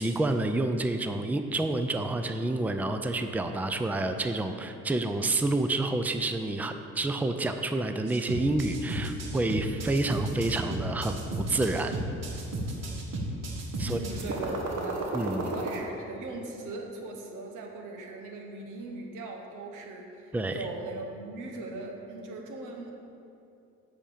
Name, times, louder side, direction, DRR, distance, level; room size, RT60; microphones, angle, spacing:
voice 1, 0.0-12.0 13.8-14.0 15.1-15.5 20.3-20.6, right 2 dB, 5° right, 7 dB, 0.4 m, -29 dB
sound 1, 8.1-15.8, right 2 dB, 60° right, 1.5 m, -33 dB
voice 2, 13.8-15.1 15.5-22.9, right 2 dB, 90° right, 2 dB, 1.3 m, -39 dB
8.2 x 5.1 x 7.3 m, 2.7 s
cardioid pair, 90°, 30 cm